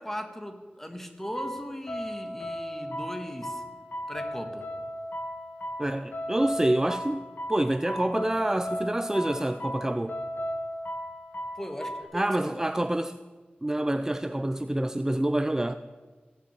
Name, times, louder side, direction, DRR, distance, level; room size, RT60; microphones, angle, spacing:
voice 1, 0.0-3.6 4.1-4.7 11.6-12.6, equal, 10° left, 1.9 m, -38 dB
sound 1, 1.2-12.0, equal, 75° left, 2.0 m, -36 dB
voice 2, 5.8-10.2 12.1-13.2 13.6-15.8, right 1 dB, 15° right, 0.5 m, -27 dB
16.5 x 6.7 x 9.2 m
wide cardioid pair, 60°, 3 cm